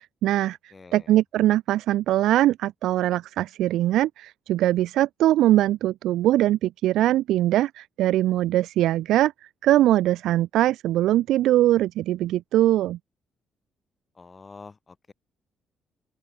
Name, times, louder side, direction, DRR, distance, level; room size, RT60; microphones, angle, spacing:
voice 1, 0.0-9.3 9.6-13.0, right 14 dB, 85° right, 0.4 m, -22 dB
voice 2, 0.7-1.1 14.1-15.1, left 4 dB, 30° left, 6.1 m, -46 dB
open air
cardioid pair, 90°, 0 cm